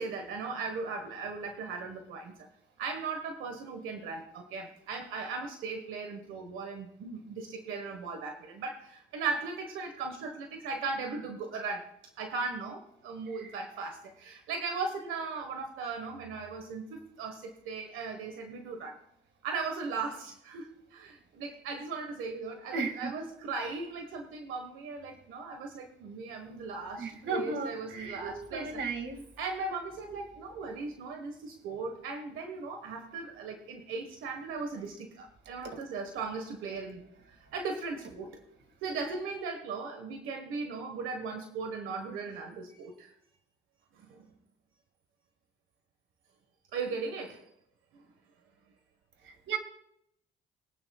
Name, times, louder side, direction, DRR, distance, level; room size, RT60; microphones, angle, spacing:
voice 1, 0.0-2.5 2.8-11.9 12.2-19.0 19.4-28.8 29.4-38.3 38.8-43.1 43.9-44.3 46.7-47.4 47.9-48.0, right 4 dB, 85° right, 4 dB, 1.5 m, -38 dB
voice 2, 22.7-23.1 27.0-29.2 49.2-49.6, right 4 dB, 65° right, 5 dB, 2.3 m, -35 dB
23.0 x 9.3 x 2.4 m, 0.75 s
cardioid pair, 90°, 20 cm